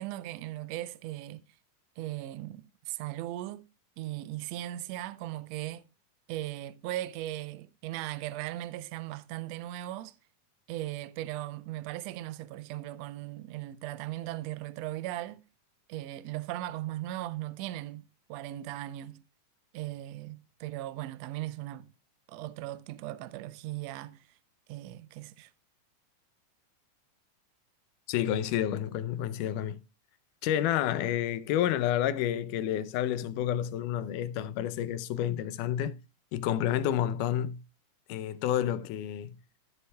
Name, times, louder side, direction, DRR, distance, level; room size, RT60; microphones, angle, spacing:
voice 1, 0.0-1.4 2.0-3.6 4.0-5.8 6.3-10.1 10.7-15.4 15.9-18.0 18.3-19.2 19.7-21.9 22.3-24.2 24.7-25.5, right 15 dB, 85° right, 1.5 m, -38 dB
voice 2, 28.1-29.8 30.4-36.0 36.3-37.6 38.1-39.4, left 11 dB, 80° left, 2.2 m, -29 dB
15.0 x 7.9 x 2.3 m
omnidirectional pair, 3.7 m